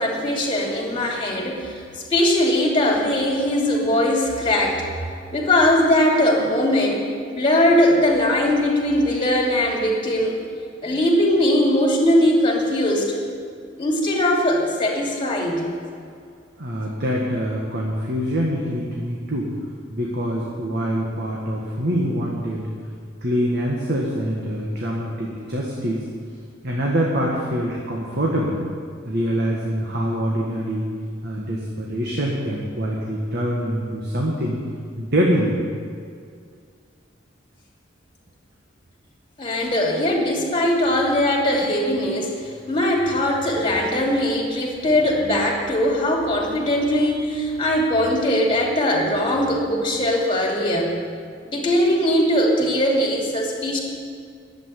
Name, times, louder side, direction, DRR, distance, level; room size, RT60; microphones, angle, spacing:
voice 1, 0.0-1.8 2.1-4.8 5.3-7.0 7.3-10.4 10.8-13.2 13.8-15.7 39.4-50.9 51.4-53.8, left 1 dB, 25° left, -1 dB, 2.7 m, -20 dB
voice 2, 16.6-19.5 19.9-22.7 23.2-26.0 26.6-28.7 29.0-30.9 31.2-34.6 35.0-35.6, equal, 60° right, -2 dB, 1.7 m, -24 dB
11.0 x 8.4 x 9.8 m, 2.2 s
head